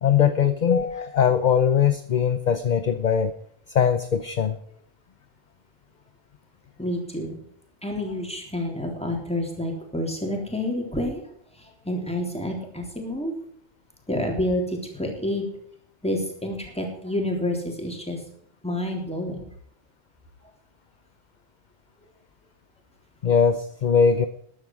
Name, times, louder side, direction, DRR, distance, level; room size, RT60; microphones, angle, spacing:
voice 1, 0.0-3.3 3.7-4.6 23.2-24.3, left 7 dB, 45° left, 11 dB, 0.8 m, -21 dB
voice 2, 6.8-7.4 7.8-11.2 11.9-13.3 14.1-15.4 16.0-18.2 18.6-19.4, left 1 dB, 5° left, 1 dB, 3.5 m, -28 dB
13.5 x 11.0 x 4.7 m, 0.66 s
omnidirectional pair, 1.2 m